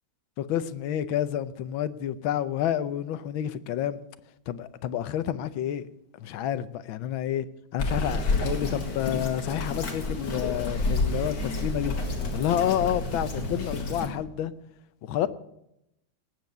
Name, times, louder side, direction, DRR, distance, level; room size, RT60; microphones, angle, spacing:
voice 1, 0.4-4.0 4.5-5.8 6.2-7.4 7.7-11.9 12.3-14.5 15.0-15.3, left 11 dB, 80° left, 1.5 m, -29 dB
Bird vocalization bird call bird song, 7.8-14.1, left 2 dB, 55° left, 2.5 m, -29 dB
19.0 x 7.8 x 6.6 m
omnidirectional pair, 2.2 m